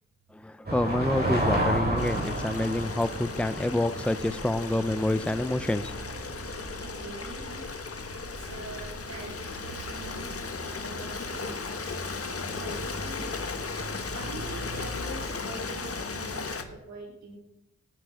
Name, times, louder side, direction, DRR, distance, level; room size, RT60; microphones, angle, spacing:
voice 1, 0.3-6.0, left 1 dB, 5° left, 13 dB, 0.8 m, -28 dB
sound 1, 0.6-16.7, right 1 dB, 35° right, 6.9 m, -35 dB
Stream, 2.0-16.6, left 5 dB, 50° left, 1.7 m, -37 dB
voice 2, 6.8-7.8 8.2-12.0 12.5-13.6 14.1-17.4, right 2 dB, 65° right, -2 dB, 4.0 m, -44 dB
18.0 x 10.5 x 5.1 m, 0.85 s
cardioid pair, 55°, 29 cm